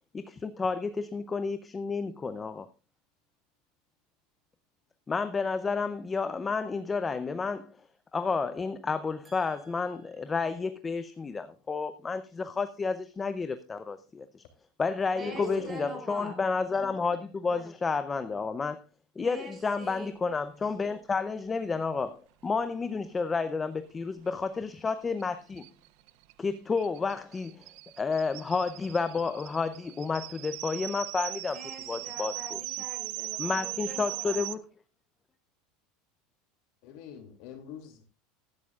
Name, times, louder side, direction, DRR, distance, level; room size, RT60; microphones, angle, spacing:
voice 1, 0.1-2.7 5.1-7.7 8.1-14.4 14.8-18.8 19.2-25.6 26.4-27.7 28.0-31.6 31.9-32.3 33.4-34.6, left 4 dB, 15° left, 0.6 m, -31 dB
voice 2, 9.2-10.3 15.1-16.4 19.2-20.1 31.4-34.4, right 2 dB, 15° right, 4.1 m, -45 dB
voice 3, 15.2-15.7 36.8-38.0, left 8 dB, 55° left, 2.6 m, -41 dB
sound 1, 24.9-25.0 25.2-25.3 25.6-34.5, right 21 dB, 60° right, 0.5 m, -39 dB
16.5 x 13.0 x 2.4 m
supercardioid pair, 160°, 0 cm